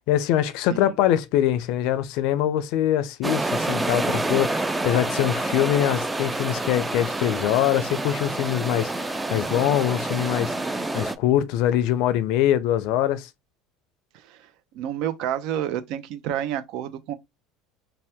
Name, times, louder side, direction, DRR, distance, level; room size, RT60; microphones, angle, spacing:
voice 1, 0.0-13.3, left 11 dB, 65° left, 0.4 m, -23 dB
sound 1, 3.2-11.2, right 2 dB, 10° right, 0.3 m, -28 dB
voice 2, 14.7-17.1, right 10 dB, 65° right, 0.5 m, -29 dB
2.8 x 2.2 x 3.3 m
supercardioid pair, 120°, 0 cm